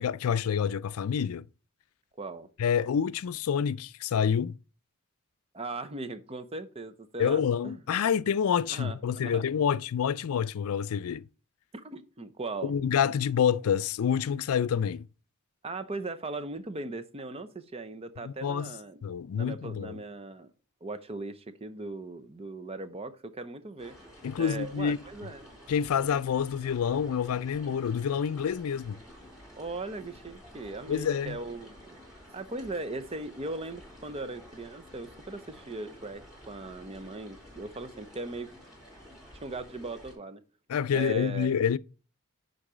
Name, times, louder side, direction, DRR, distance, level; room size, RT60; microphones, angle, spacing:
voice 1, 0.0-1.5 2.6-4.6 7.2-11.2 12.6-15.1 18.2-18.7 19.0-20.0 24.2-25.0 25.7-29.0 30.9-31.4 40.7-41.8, left 7 dB, 75° left, 0.4 m, -27 dB
voice 2, 2.2-2.5 5.5-7.8 8.7-9.4 11.7-12.7 15.6-20.5 20.8-24.0 24.4-25.5 29.6-32.0 32.3-38.5 39.4-40.4 40.9-41.6, right 2 dB, 25° right, 0.7 m, -39 dB
sound 1, 23.8-40.1, equal, 5° right, 5.0 m, -51 dB
10.0 x 4.0 x 5.0 m
head